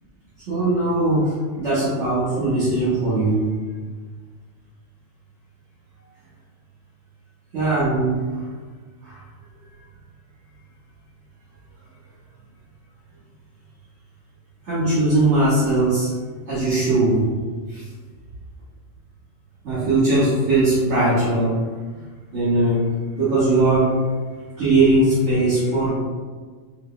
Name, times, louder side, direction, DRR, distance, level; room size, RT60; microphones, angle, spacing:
voice 1, 0.5-3.4 7.5-8.2 9.0-9.2 14.6-16.1 16.5-17.2 17.7-17.8 19.6-21.6 22.3-22.8 23.2-24.0 24.6-25.9, right 2 dB, 75° right, -11 dB, 1.5 m, -19 dB
4.8 x 2.1 x 2.2 m, 1.5 s
omnidirectional pair, 1.3 m